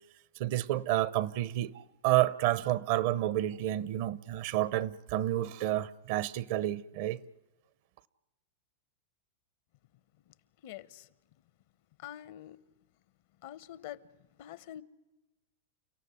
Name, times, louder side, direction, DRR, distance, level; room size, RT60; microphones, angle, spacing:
voice 1, 0.4-7.2, right 14 dB, 60° right, 0.8 m, -30 dB
voice 2, 10.6-11.1 12.0-12.6 13.4-14.0 14.4-14.8, left 12 dB, 65° left, 0.9 m, -45 dB
30.0 x 14.5 x 9.7 m
hypercardioid pair, 110°, 0 cm